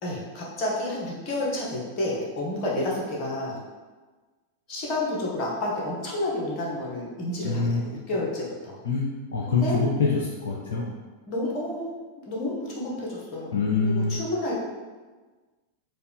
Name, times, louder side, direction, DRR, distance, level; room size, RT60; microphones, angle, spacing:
voice 1, 0.0-3.6 4.7-8.8 9.5-9.8 11.3-11.9 12.2-14.6, left 1 dB, 40° left, -4 dB, 1.1 m, -30 dB
voice 2, 7.4-7.8 8.8-9.0 9.3-10.9 13.5-14.2, left 4 dB, 65° left, -3 dB, 0.4 m, -25 dB
4.0 x 2.4 x 3.5 m, 1.3 s
figure-of-eight pair, 90°, 0 cm